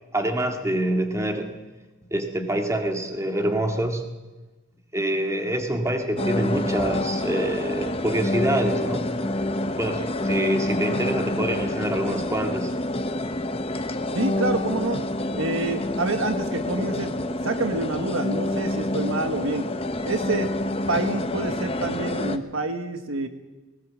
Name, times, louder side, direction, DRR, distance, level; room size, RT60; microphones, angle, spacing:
voice 1, 0.1-1.6 2.1-4.0 4.9-9.2 9.7-12.7, right 1 dB, 15° right, 4 dB, 2.0 m, -26 dB
sound 1, 6.2-22.4, left 1 dB, 25° left, 1.0 m, -27 dB
voice 2, 14.1-15.0 15.3-17.2 17.4-19.6 20.0-20.5 20.9-23.3, right 2 dB, 65° right, 8 dB, 1.5 m, -27 dB
19.0 x 19.0 x 7.5 m, 1.2 s
head